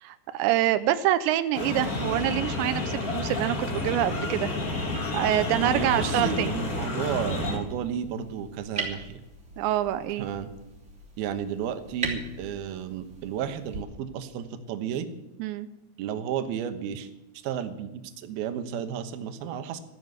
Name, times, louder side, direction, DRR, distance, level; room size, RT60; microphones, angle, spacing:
voice 1, 0.0-4.5 5.1-6.6 9.6-10.3 15.4-15.7, right 12 dB, 85° right, 12 dB, 3.0 m, -26 dB
sound 1, 1.5-7.6, left 2 dB, 25° left, 2.1 m, -30 dB
voice 2, 5.6-9.2 10.2-10.5 11.2-15.1 16.0-17.1 17.4-19.8, right 8 dB, 70° right, 9 dB, 2.9 m, -32 dB
sound 2, 5.8-13.8, right 3 dB, 15° right, 3.2 m, -40 dB
15.0 x 10.5 x 8.0 m, 0.99 s
omnidirectional pair, 4.9 m